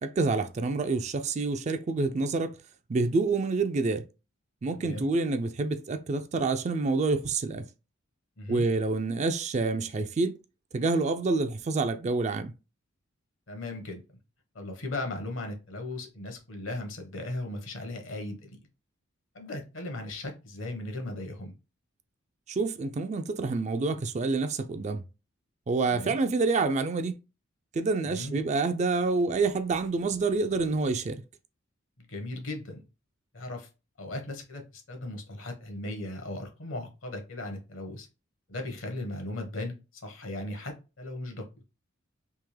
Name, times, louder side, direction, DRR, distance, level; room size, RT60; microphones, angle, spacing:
voice 1, 0.0-2.6 2.9-4.0 4.6-7.7 8.5-10.4 10.7-12.5 22.5-25.0 25.7-27.2 27.7-31.2, right 3 dB, 35° right, 0.3 m, -27 dB
voice 2, 4.7-5.1 8.4-8.7 13.5-14.0 14.5-18.6 19.3-21.5 25.9-26.2 28.1-28.4 32.0-32.8 33.3-33.7 34.0-38.1 38.5-41.5, left 1 dB, 70° left, 1.2 m, -37 dB
3.5 x 2.8 x 3.2 m
head